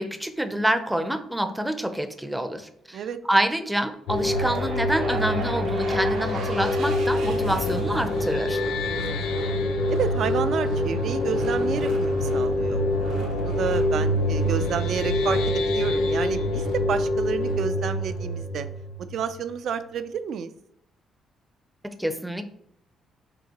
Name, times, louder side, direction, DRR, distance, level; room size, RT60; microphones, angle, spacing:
voice 1, 0.0-3.0 3.3-8.6 21.8-22.4, right 1 dB, 5° right, 9 dB, 0.5 m, -27 dB
sound 1, 4.1-19.5, left 1 dB, 90° left, 0.5 m, -26 dB
sound 2, 4.1-18.3, right 3 dB, 85° right, 0.8 m, -37 dB
voice 2, 8.8-9.3 9.9-18.7 19.1-20.5, right 7 dB, 65° right, 11 dB, 0.3 m, -30 dB
5.3 x 2.9 x 2.9 m, 0.74 s
cardioid pair, 90°, 0 cm